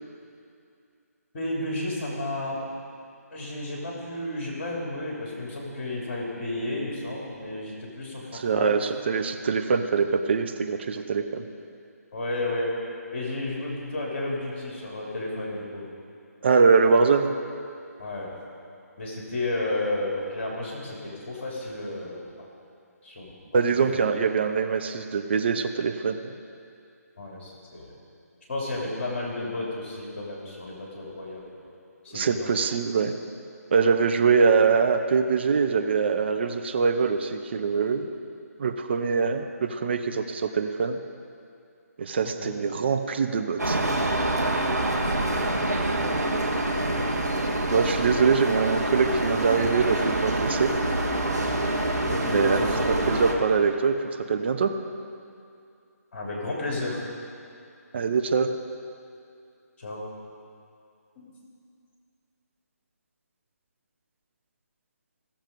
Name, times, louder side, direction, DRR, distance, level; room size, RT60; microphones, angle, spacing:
voice 1, 1.3-2.6 3.3-8.8 12.1-12.7 13.1-15.9 18.0-18.3 19.0-22.2 23.0-24.0 27.2-27.9 28.5-31.5 32.0-32.5 42.2-42.5 44.8-46.1 52.1-52.9 56.1-57.0 59.8-60.0 61.2-61.3, left 2 dB, 40° left, -3 dB, 2.9 m, -32 dB
voice 2, 8.3-11.4 16.4-17.3 23.5-26.3 32.1-33.1 33.7-38.1 38.6-41.0 42.0-43.8 46.9-47.0 47.7-50.7 52.3-52.6 52.9-53.9 54.3-54.7 57.9-58.5, right 5 dB, 40° right, 6 dB, 0.8 m, -23 dB
sound 1, 43.6-53.3, right 1 dB, 80° right, 1.8 m, -26 dB
17.0 x 7.2 x 5.3 m, 2.5 s
figure-of-eight pair, 150°, 9 cm